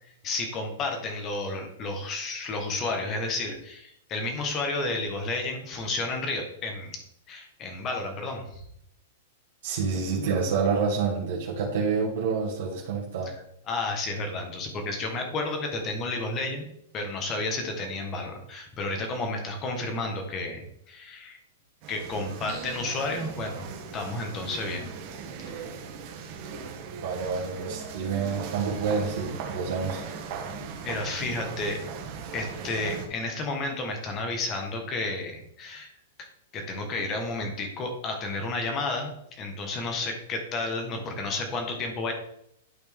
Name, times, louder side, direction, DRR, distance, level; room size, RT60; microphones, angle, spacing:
voice 1, 0.2-7.0 7.3-8.6 13.7-16.7 16.9-21.4 21.9-23.6 23.9-24.9 30.8-31.8 32.3-35.9 36.2-36.3 36.5-42.1, left 2 dB, 20° left, 3 dB, 1.4 m, -31 dB
voice 2, 9.6-13.3 27.0-30.0, right 5 dB, 55° right, -4 dB, 2.1 m, -28 dB
sound 1, 21.8-33.1, right 6 dB, 35° right, 1.2 m, -38 dB
11.5 x 4.3 x 3.7 m, 0.74 s
supercardioid pair, 170°, 0 cm